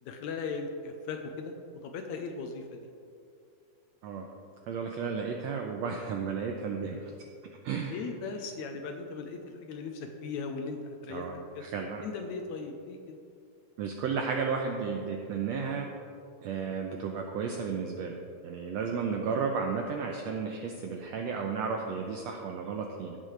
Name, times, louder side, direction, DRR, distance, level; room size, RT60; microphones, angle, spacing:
voice 1, 0.0-1.5 1.8-2.9 7.8-11.6 12.0-13.2, left 4 dB, 75° left, 4 dB, 1.9 m, -38 dB
voice 2, 4.7-7.1 7.6-8.0 11.1-11.3 11.6-12.0 13.8-15.9 16.4-18.2 18.4-23.2, right 5 dB, 85° right, 2 dB, 1.5 m, -33 dB
16.5 x 7.5 x 3.2 m, 2.4 s
omnidirectional pair, 3.7 m